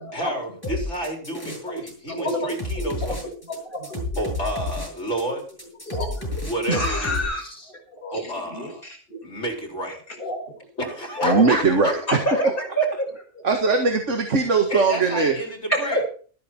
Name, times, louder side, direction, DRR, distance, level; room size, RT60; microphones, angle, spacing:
voice 1, 0.1-3.3 4.2-5.4 6.4-7.7 8.1-8.8 9.2-10.0 10.8-12.2 14.7-16.0, equal, 60° left, 2 dB, 4.7 m, -30 dB
sound 1, 0.6-1.9 2.2-7.2, left 2 dB, 15° left, 7.8 m, -31 dB
voice 2, 1.3-2.9 3.5-4.3 5.9-6.4 6.7-9.2 10.2-10.5 11.2-11.5 12.1-13.1 15.7-16.0, equal, 40° left, 1 dB, 5.8 m, -28 dB
voice 3, 11.2-12.0 13.4-15.3, right 4 dB, 65° right, 4 dB, 2.1 m, -20 dB
14.5 x 13.0 x 4.3 m, 0.42 s
omnidirectional pair, 1.4 m